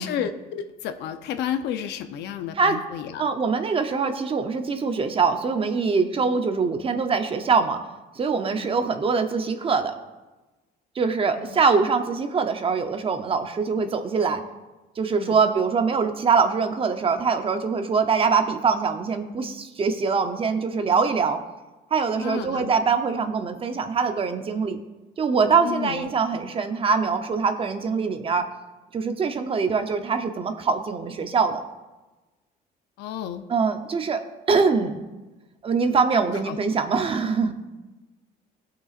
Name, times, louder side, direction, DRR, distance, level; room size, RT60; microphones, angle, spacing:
voice 1, 0.0-3.2 8.5-8.8 11.4-11.6 15.2-15.4 22.2-22.7 25.6-26.1 33.0-33.4 36.5-36.6, left 9 dB, 80° left, 9 dB, 0.7 m, -32 dB
voice 2, 3.2-7.8 8.2-9.9 11.0-14.4 15.0-21.4 21.9-24.8 25.2-28.4 28.9-31.6 33.5-34.2 34.5-35.0 35.6-37.5, right 5 dB, 30° right, 7 dB, 0.8 m, -23 dB
16.0 x 6.1 x 2.5 m, 1.1 s
cardioid pair, 120°, 17 cm